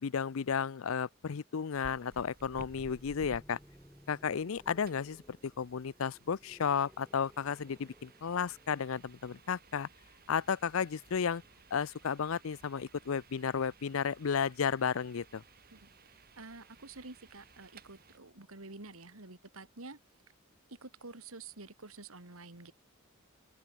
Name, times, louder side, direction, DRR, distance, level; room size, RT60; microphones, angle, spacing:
voice 1, 0.0-3.6 4.1-9.9 10.3-11.4 11.7-15.4, left 6 dB, 70° left, 0.5 m, -33 dB
sound 1, 1.7-18.2, right 2 dB, 45° right, 3.8 m, -58 dB
sound 2, 2.3-14.3 15.6-19.2, equal, 5° left, 3.6 m, -63 dB
voice 2, 15.7-20.0 20.7-22.7, right 3 dB, 90° right, 2.9 m, -49 dB
open air
head